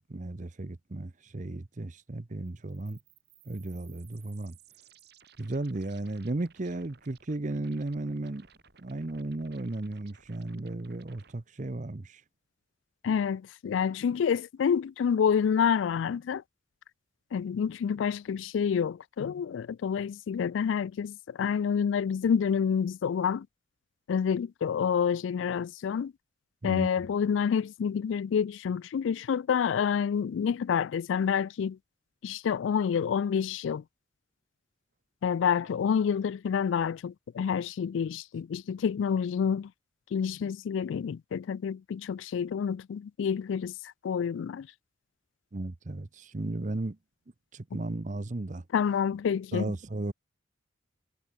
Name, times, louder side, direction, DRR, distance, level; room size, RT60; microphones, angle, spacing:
voice 1, 0.0-3.0 3.5-4.6 5.4-8.5 8.8-12.2 26.6-26.9 45.5-47.0 47.5-48.6 49.5-50.1, right 2 dB, 40° right, 0.7 m, -35 dB
sound 1, 2.4-11.3, right 7 dB, 55° right, 3.8 m, -60 dB
voice 2, 13.0-16.4 17.3-23.5 24.1-26.1 26.6-31.8 32.2-33.8 35.2-39.7 40.1-43.7 44.0-44.7 48.7-49.7, left 7 dB, 75° left, 0.3 m, -28 dB
head